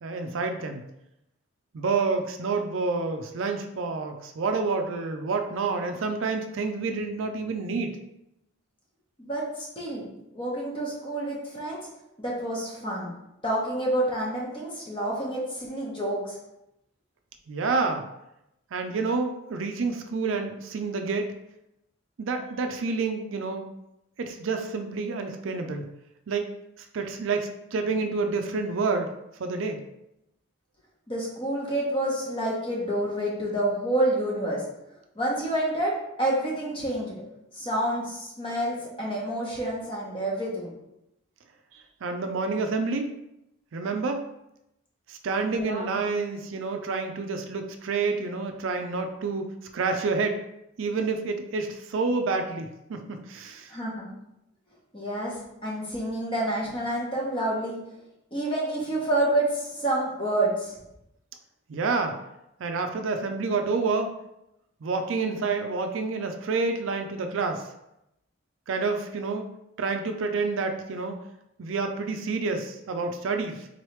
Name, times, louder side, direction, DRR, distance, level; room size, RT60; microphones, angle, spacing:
voice 1, 0.0-0.8 1.7-7.9 17.5-18.0 18.7-21.3 22.2-23.7 24.2-25.9 26.3-26.5 26.9-29.1 29.4-29.8 41.7-43.2 43.7-44.2 45.1-50.4 50.8-53.7 61.7-62.2 62.6-64.1 64.8-67.7 68.7-69.5 69.8-71.2 71.6-73.7, right 4 dB, 70° right, 5 dB, 0.4 m, -28 dB
voice 2, 9.2-10.1 10.3-11.8 12.2-13.1 13.4-16.4 31.1-34.6 35.2-37.1 37.6-40.7 45.4-46.0 53.7-54.1 54.9-55.3 55.6-57.8 58.3-60.7, right 1 dB, 25° left, -4 dB, 0.9 m, -28 dB
4.0 x 3.1 x 3.1 m, 0.85 s
head